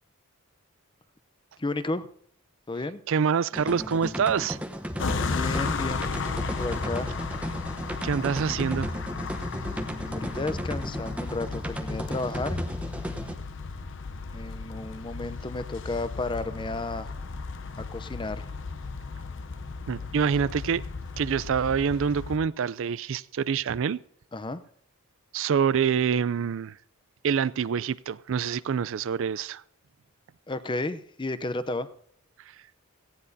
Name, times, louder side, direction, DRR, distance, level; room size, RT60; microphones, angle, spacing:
voice 1, 1.6-2.1 2.7-3.0 5.2-6.2 6.6-7.1 10.1-12.6 14.3-17.1 17.8-18.5 20.0-20.3 24.3-24.6 30.5-31.9, left 2 dB, 25° left, 0.6 m, -32 dB
voice 2, 3.1-4.6 8.0-8.9 19.9-20.8 21.2-24.0 25.3-26.8 27.2-29.6, right 7 dB, 65° right, 0.4 m, -26 dB
sound 1, 3.5-13.3, equal, 5° right, 0.9 m, -34 dB
sound 2, 5.0-22.4, left 4 dB, 60° left, 0.7 m, -35 dB
17.5 x 15.0 x 2.7 m
head